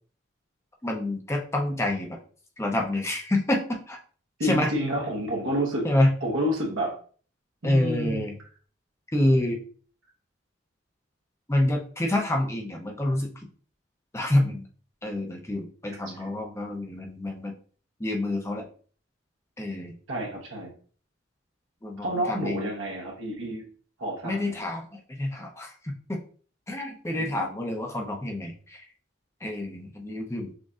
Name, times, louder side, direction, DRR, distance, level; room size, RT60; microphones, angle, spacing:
voice 1, 0.8-2.2 2.6-4.0 4.4-4.7 5.8-6.1 7.6-8.3 9.1-9.6 11.5-13.3 14.1-14.7 15.0-17.5 18.0-18.7 19.6-20.0 21.8-22.7 24.2-26.2 26.7-28.8 29.4-30.5, left 1 dB, 15° left, 2 dB, 0.5 m, -27 dB
voice 2, 4.4-5.9 6.2-7.0 7.6-8.2 20.1-20.7 22.0-23.6 24.0-24.6 27.1-27.5, equal, 80° right, -2 dB, 1.2 m, -29 dB
6.2 x 2.6 x 2.4 m, 0.43 s
head